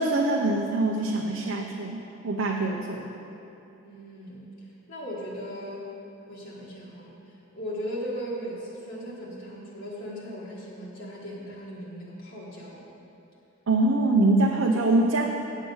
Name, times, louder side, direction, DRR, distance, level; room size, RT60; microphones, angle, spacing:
voice 1, 0.0-3.1 13.7-15.3, right 2 dB, 70° right, 0 dB, 0.6 m, -24 dB
voice 2, 3.8-5.9 6.3-12.8, equal, 65° left, -6 dB, 1.4 m, -38 dB
8.6 x 7.3 x 5.3 m, 2.9 s
head